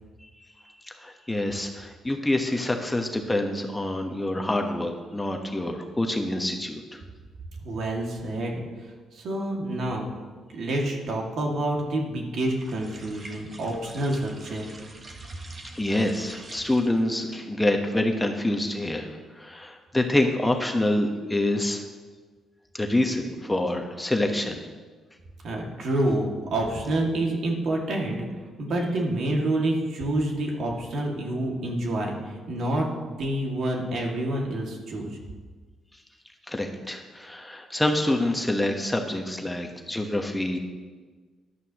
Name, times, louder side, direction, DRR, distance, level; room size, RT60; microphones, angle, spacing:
voice 1, 0.9-7.0 15.7-21.9 22.7-24.6 36.5-40.6, left 1 dB, 10° left, 3 dB, 1.1 m, -26 dB
voice 2, 7.6-10.1 10.5-14.6 25.4-28.3 28.6-35.2, right 1 dB, 65° right, 0 dB, 2.2 m, -28 dB
sound 1, 12.4-17.1, right 2 dB, 35° right, 1.5 m, -46 dB
13.5 x 11.0 x 3.0 m, 1.4 s
cardioid pair, 90°, 0 cm